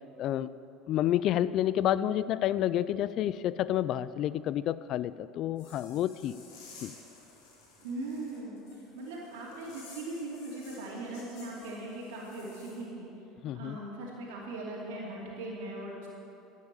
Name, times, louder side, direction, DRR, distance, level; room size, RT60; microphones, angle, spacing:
voice 1, 0.2-0.5 0.9-6.4 6.8-6.9 13.4-13.8, left 12 dB, 55° left, 17 dB, 0.4 m, -29 dB
sound 1, 5.6-12.8, left 3 dB, 80° left, 3.7 m, -54 dB
voice 2, 7.8-13.1 13.5-16.1, right 2 dB, 85° right, -5 dB, 2.9 m, -40 dB
12.0 x 8.5 x 8.3 m, 2.9 s
supercardioid pair, 105°, 0 cm